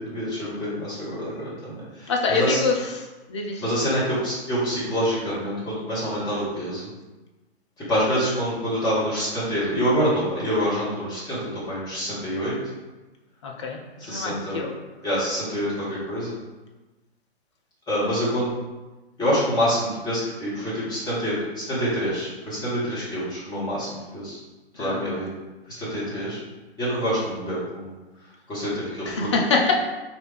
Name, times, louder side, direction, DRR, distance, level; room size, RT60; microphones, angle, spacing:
voice 1, 0.0-2.6 3.6-6.9 7.8-12.5 14.0-14.6 15.0-16.3 17.9-18.5 19.2-24.4 24.7-25.4 25.8-26.4 26.8-27.9 28.5-29.3, equal, 10° left, -9 dB, 1.2 m, -26 dB
voice 2, 2.1-2.7 3.3-3.6 13.4-13.8 14.1-14.7 24.8-25.0 29.1-29.7, left 4 dB, 30° left, 0 dB, 0.4 m, -24 dB
3.1 x 2.6 x 3.2 m, 1.1 s
figure-of-eight pair, 115°, 32 cm